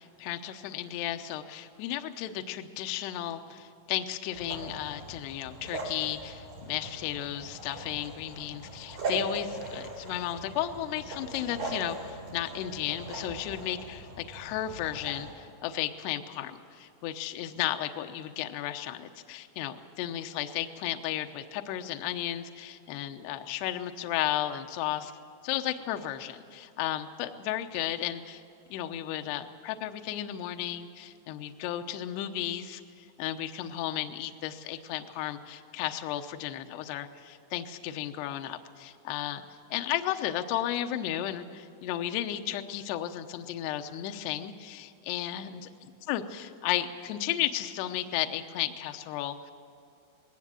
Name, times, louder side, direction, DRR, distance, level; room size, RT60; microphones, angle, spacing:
voice 1, 0.0-25.1 25.4-28.4 28.7-39.4 39.7-49.5, left 12 dB, 80° left, 6 dB, 2.6 m, -34 dB
sound 1, 4.3-15.3, right 2 dB, 45° right, 7.8 m, -39 dB
20.0 x 18.5 x 7.6 m, 2.5 s
omnidirectional pair, 5.6 m